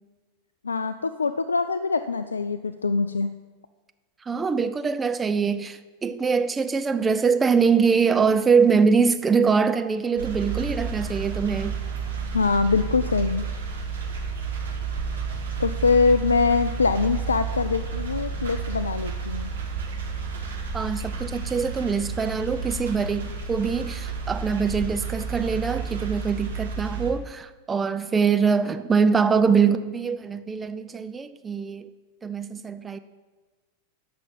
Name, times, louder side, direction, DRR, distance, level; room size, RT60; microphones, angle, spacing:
voice 1, 0.6-3.3 12.3-13.5 15.6-19.5, left 4 dB, 75° left, 0.3 m, -23 dB
voice 2, 4.3-11.7 20.7-31.9 32.2-33.0, right 5 dB, 15° right, 0.5 m, -23 dB
sound 1, 10.2-27.1, right 5 dB, 65° right, 2.2 m, -31 dB
10.5 x 5.9 x 7.3 m
figure-of-eight pair, 90°, 0 cm